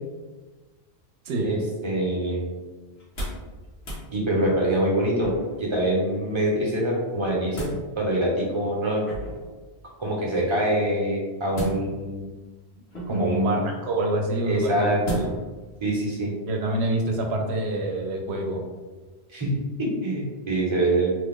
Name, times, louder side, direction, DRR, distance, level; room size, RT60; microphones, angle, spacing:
voice 1, 1.4-2.5 4.1-5.3 5.6-7.7 8.0-9.1 10.0-12.2 13.1-13.5 14.5-15.0 15.8-16.3 19.3-19.5 19.8-21.1, right 1 dB, 30° right, -3 dB, 0.8 m, -24 dB
sound 1, 2.9-3.5 3.8-4.1 5.2-5.6 7.1-7.8 9.0-9.5 11.5-12.1 12.9-13.4 15.0-15.5 16.0-16.1, right 1 dB, 80° left, 1.3 m, -33 dB
voice 2, 13.1-14.9 16.5-18.6, right 1 dB, 75° right, 2 dB, 0.9 m, -26 dB
3.0 x 2.4 x 3.6 m, 1.3 s
omnidirectional pair, 1.1 m